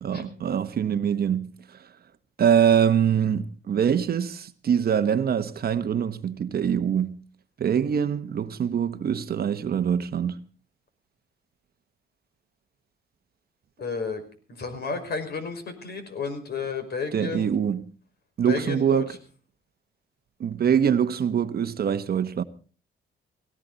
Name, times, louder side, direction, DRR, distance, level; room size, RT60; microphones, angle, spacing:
voice 1, 0.0-1.5 2.4-7.2 7.6-10.4 17.1-17.8 18.4-19.1 20.4-22.4, right 8 dB, 50° right, 1.1 m, -24 dB
voice 2, 13.8-14.2 14.5-17.5 18.4-19.0, left 5 dB, 55° left, 5.3 m, -32 dB
18.5 x 17.5 x 4.0 m
cardioid pair, 90°, 20 cm